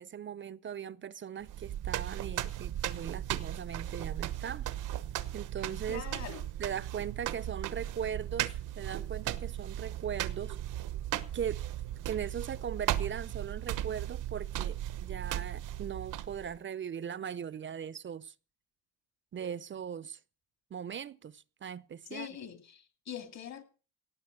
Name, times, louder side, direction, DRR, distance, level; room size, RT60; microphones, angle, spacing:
voice 1, 0.0-4.7 5.3-10.6 11.3-11.7 12.1-18.3 19.3-20.2 20.7-22.3, right 8 dB, 40° right, 0.6 m, -39 dB
sound 1, 1.4-16.6, right 12 dB, 90° right, 1.1 m, -36 dB
voice 2, 5.9-6.4 22.1-23.6, left 9 dB, 60° left, 2.7 m, -43 dB
18.0 x 6.8 x 8.0 m
cardioid pair, 90°, 30 cm